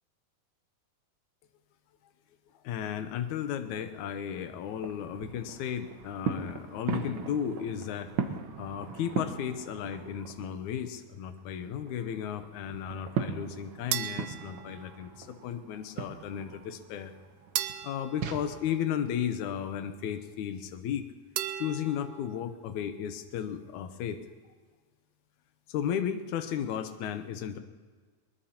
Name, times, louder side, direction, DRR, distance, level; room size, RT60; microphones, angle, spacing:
voice 1, 2.6-8.1 8.6-17.1 17.8-21.1 21.6-24.2 25.7-27.6, left 9 dB, 80° left, 9 dB, 2.3 m, -34 dB
sound 1, 3.7-10.6 10.9-18.4, right 6 dB, 60° right, 1.4 m, -39 dB
sound 2, 13.9-15.4 17.6-19.4 21.4-22.5, right 12 dB, 85° right, 1.3 m, -37 dB
21.5 x 21.0 x 2.9 m, 1.5 s
omnidirectional pair, 3.5 m